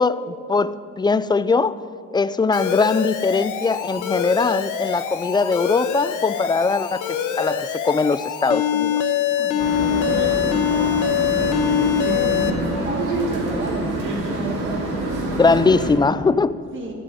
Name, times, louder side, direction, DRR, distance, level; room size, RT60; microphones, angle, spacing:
voice 1, 0.0-1.8 2.1-9.0 15.3-16.6, left 4 dB, 15° left, 0.3 m, -21 dB
Alarm, 2.5-12.5, left 9 dB, 85° left, 1.1 m, -24 dB
voice 2, 9.4-15.6 16.7-16.9, right 1 dB, 40° right, 1.8 m, -34 dB
sound 1, 9.6-15.9, right 2 dB, 85° right, 2.7 m, -26 dB
13.5 x 6.2 x 9.1 m
cardioid pair, 90°, 30 cm